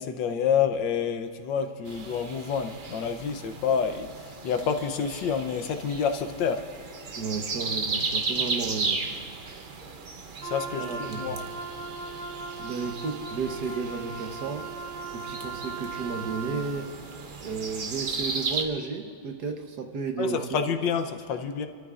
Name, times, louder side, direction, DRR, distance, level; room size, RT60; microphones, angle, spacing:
voice 1, 0.0-6.6 10.4-11.4 20.2-21.7, left 7 dB, 80° left, 6 dB, 1.5 m, -28 dB
sound 1, 1.9-18.7, right 4 dB, 50° right, 0.6 m, -35 dB
voice 2, 7.2-9.0 10.8-11.4 12.6-14.7 15.1-16.9 17.4-20.6, right 4 dB, 65° right, 4 dB, 1.6 m, -33 dB
Wind instrument woodwind instrument, 10.4-16.7, right 4 dB, 30° right, 2.2 m, -38 dB
30.0 x 13.5 x 2.5 m, 2.3 s
omnidirectional pair, 2.0 m